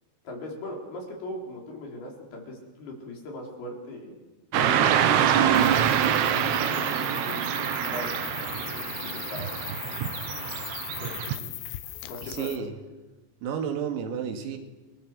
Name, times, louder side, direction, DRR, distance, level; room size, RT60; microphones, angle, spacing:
voice 1, 0.2-4.2 4.5-9.7 11.0-11.5 12.1-12.6, left 1 dB, 50° left, 0 dB, 6.0 m, -39 dB
Car passing by / Traffic noise roadway noise, 4.5-11.4, right 9 dB, 70° right, 2.8 m, -25 dB
sound 1, 5.5-12.6, left 15 dB, 80° left, 3.4 m, -39 dB
voice 2, 12.2-12.7 13.4-14.6, right 8 dB, 85° right, 5 dB, 5.0 m, -31 dB
30.0 x 22.0 x 7.7 m, 1.2 s
omnidirectional pair, 6.0 m